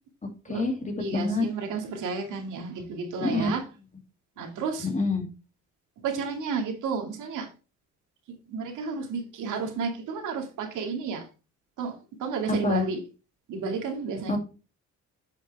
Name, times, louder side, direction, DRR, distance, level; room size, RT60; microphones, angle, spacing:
voice 1, 0.2-1.5 3.2-3.5 4.8-5.2 12.5-12.8 14.3-14.4, left 2 dB, 25° left, 2.6 m, -27 dB
voice 2, 1.0-3.6 4.4-4.9 6.0-7.5 8.5-11.3 11.8-13.0 13.5-14.4, right 5 dB, 85° right, 2.2 m, -32 dB
9.2 x 5.8 x 3.4 m
cardioid pair, 90°, 30 cm